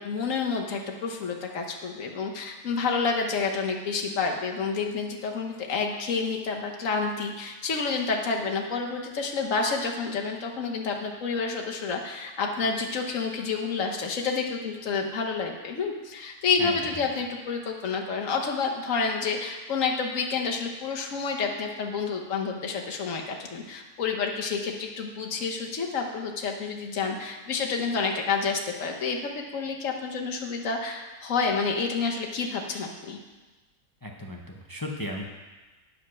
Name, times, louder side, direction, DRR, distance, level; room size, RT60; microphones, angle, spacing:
voice 1, 0.0-33.2, left 5 dB, 55° left, 1 dB, 1.4 m, -29 dB
voice 2, 34.0-35.2, left 1 dB, 25° left, 0 dB, 0.4 m, -35 dB
9.8 x 5.0 x 6.2 m, 1.2 s
omnidirectional pair, 1.7 m